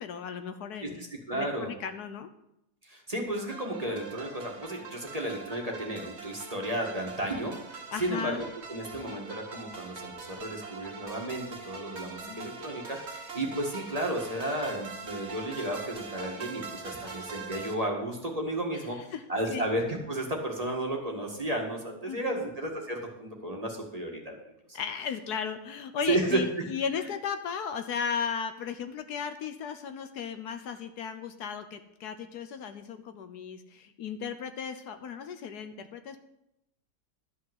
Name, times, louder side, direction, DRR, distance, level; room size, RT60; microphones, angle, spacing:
voice 1, 0.0-1.0 1.3-2.3 7.9-8.4 12.0-12.5 18.7-19.2 19.5-19.7 22.1-22.5 24.7-36.2, left 6 dB, 70° left, 9 dB, 1.3 m, -36 dB
voice 2, 0.8-1.7 2.8-19.0 19.3-24.3 24.7-24.8 26.1-26.4, right 1 dB, 20° right, 0 dB, 1.8 m, -33 dB
sound 1, 3.5-17.7, right 5 dB, 40° right, 1.7 m, -43 dB
12.5 x 5.8 x 7.8 m, 0.83 s
omnidirectional pair, 1.8 m